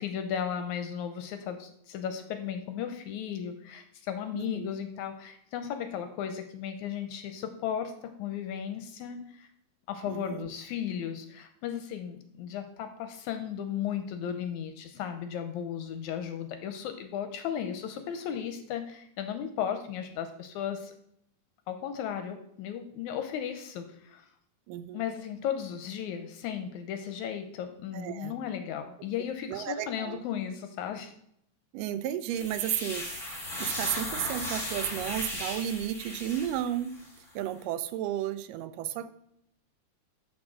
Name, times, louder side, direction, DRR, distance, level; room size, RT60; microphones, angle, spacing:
voice 1, 0.0-9.5 9.9-20.9 21.7-24.3 24.9-31.1, left 8 dB, 80° left, 7 dB, 1.8 m, -35 dB
voice 2, 4.4-4.7 10.1-10.5 24.7-25.0 27.9-28.3 29.5-30.2 31.7-33.2 33.6-36.9 37.4-39.1, right 11 dB, 85° right, 13 dB, 2.2 m, -33 dB
sound 1, 32.3-37.1, left 1 dB, 10° left, 1.2 m, -36 dB
6.4 x 6.2 x 6.2 m, 0.72 s
omnidirectional pair, 3.8 m